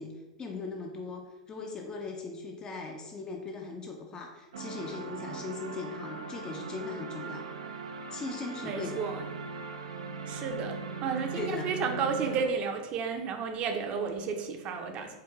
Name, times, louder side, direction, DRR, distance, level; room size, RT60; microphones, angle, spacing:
voice 1, 0.0-7.5 8.1-9.0 11.1-11.7, left 4 dB, 25° left, 2 dB, 0.6 m, -39 dB
sound 1, 4.5-12.5, right 5 dB, 80° right, 0.5 m, -39 dB
voice 2, 8.6-9.2 10.3-15.2, right 5 dB, 40° right, 4 dB, 0.7 m, -32 dB
4.7 x 2.5 x 3.6 m, 1.2 s
hypercardioid pair, 100°, 3 cm